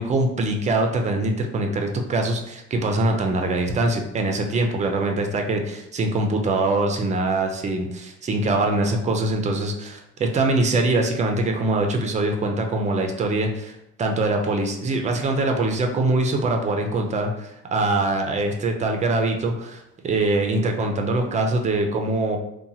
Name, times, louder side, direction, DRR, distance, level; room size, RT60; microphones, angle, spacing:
voice 1, 0.0-22.4, right 2 dB, 20° right, 3 dB, 0.4 m, -23 dB
2.8 x 2.2 x 2.7 m, 0.82 s
cardioid pair, 110°, 32 cm